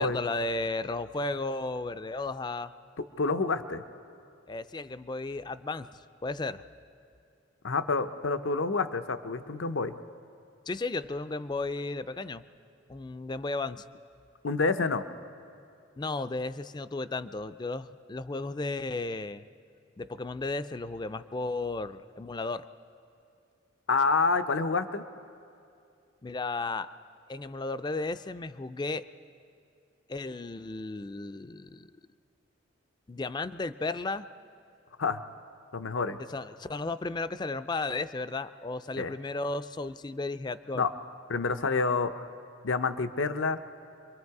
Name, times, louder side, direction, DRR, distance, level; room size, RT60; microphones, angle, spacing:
voice 1, 0.0-2.7 4.5-6.6 10.7-12.4 12.9-13.9 16.0-19.5 20.0-22.7 26.2-26.9 27.3-29.0 30.1-31.9 33.1-34.3 36.3-40.9, left 3 dB, 20° left, 13 dB, 0.4 m, -34 dB
voice 2, 3.2-3.8 7.6-9.9 14.4-15.0 23.9-25.0 35.0-35.2 35.7-36.2 39.0-39.1 40.7-40.9 41.3-42.3 42.6-43.6, left 4 dB, 80° left, 10 dB, 0.7 m, -28 dB
26.0 x 23.0 x 4.8 m, 2.4 s
head